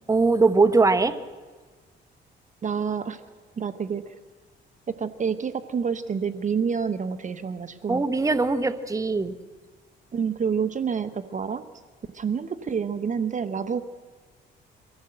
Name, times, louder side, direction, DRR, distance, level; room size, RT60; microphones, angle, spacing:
voice 1, 0.1-1.2 7.9-9.3, right 3 dB, 15° right, 9 dB, 1.1 m, -21 dB
voice 2, 2.6-3.2 3.6-4.1 5.0-8.0 10.1-11.6 12.1-13.8, right 6 dB, 40° right, 12 dB, 0.9 m, -28 dB
23.5 x 15.5 x 7.8 m, 1.4 s
cardioid pair, 90°, 20 cm